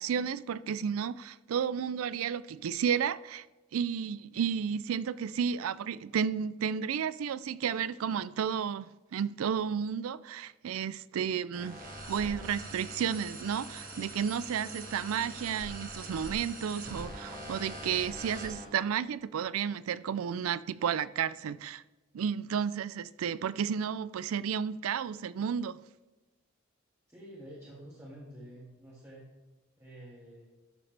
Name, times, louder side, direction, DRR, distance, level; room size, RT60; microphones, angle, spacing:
voice 1, 0.0-3.4 3.7-11.8 12.1-21.8 22.1-25.8, right 7 dB, 90° right, 0.4 m, -32 dB
sound 1, 11.5-18.6, right 1 dB, 45° right, 1.8 m, -43 dB
voice 2, 27.1-29.3 29.8-30.4, right 1 dB, 15° right, 1.9 m, -49 dB
11.5 x 7.0 x 3.3 m
head